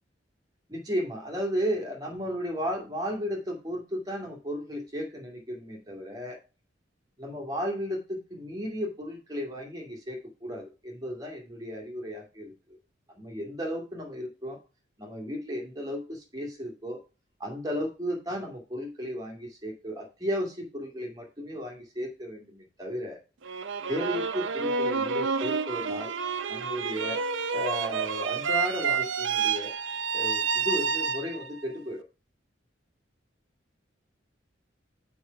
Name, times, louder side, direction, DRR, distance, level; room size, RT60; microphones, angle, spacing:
voice 1, 0.7-6.4 7.2-12.5 13.2-14.6 15.0-17.0 17.4-23.2 23.9-26.1 26.5-27.2 27.5-29.7 30.1-32.0, equal, 20° right, 0 dB, 2.2 m, -34 dB
sound 1, 23.4-31.6, right 5 dB, 80° right, 0.6 m, -29 dB
6.9 x 5.1 x 5.7 m, 0.31 s
head